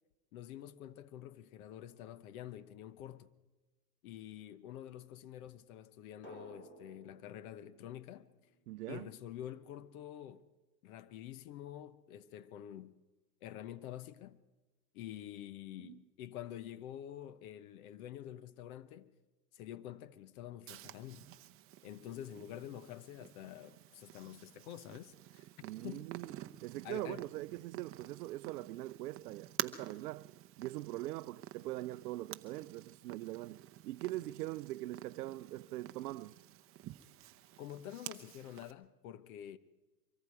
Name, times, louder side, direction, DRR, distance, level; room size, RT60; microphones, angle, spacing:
voice 1, 0.3-3.3 4.0-8.3 8.9-10.4 10.8-13.0 13.4-14.4 14.9-19.1 19.5-21.3 21.8-25.5 25.8-26.0 26.8-27.3 37.6-39.6, left 11 dB, 55° left, 1.2 m, -48 dB
Drum, 6.2-8.9, right 1 dB, 20° left, 3.5 m, -56 dB
voice 2, 8.7-9.1 15.8-16.0 25.6-26.3 26.6-30.3 30.6-36.4, right 17 dB, 65° right, 0.7 m, -42 dB
Purr, 20.7-38.7, right 14 dB, 25° right, 0.8 m, -49 dB
24.5 x 22.5 x 4.8 m
hypercardioid pair, 125°, 50 cm